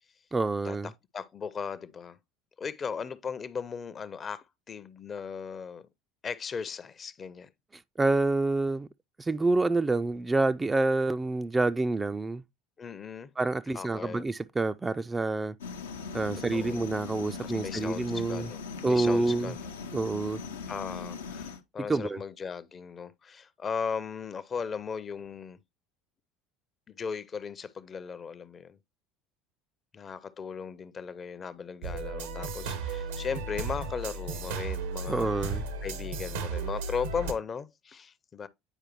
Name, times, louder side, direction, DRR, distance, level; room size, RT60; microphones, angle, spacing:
voice 1, 0.3-0.9 8.0-8.9 9.2-12.4 13.4-15.6 16.1-18.5 18.8-19.5 19.9-20.4 21.9-22.2 35.1-35.6, right 3 dB, 20° right, 0.3 m, -27 dB
voice 2, 1.1-2.2 2.6-5.9 6.2-7.5 12.8-13.3 13.7-14.3 16.5-16.8 17.4-19.7 20.7-25.6 26.9-28.8 29.9-38.5, left 6 dB, 35° left, 0.6 m, -37 dB
sound 1, 15.6-21.6, left 5 dB, 80° left, 0.6 m, -40 dB
sound 2, 31.8-37.3, right 3 dB, 75° right, 0.8 m, -35 dB
8.9 x 4.7 x 3.0 m
hypercardioid pair, 65°, 0 cm